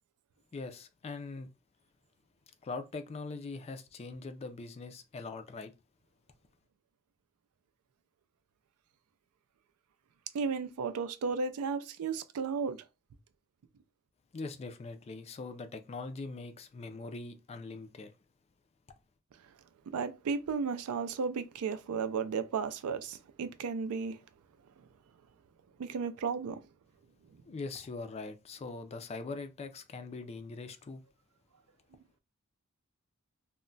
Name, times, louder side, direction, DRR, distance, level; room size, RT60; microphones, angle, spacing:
voice 1, 0.5-1.5 2.6-5.7 14.3-18.1 27.5-31.0, left 3 dB, 30° left, 0.3 m, -42 dB
voice 2, 10.3-12.8 19.9-24.2 25.8-26.6, right 5 dB, 85° right, 0.4 m, -34 dB
2.2 x 2.1 x 3.8 m
head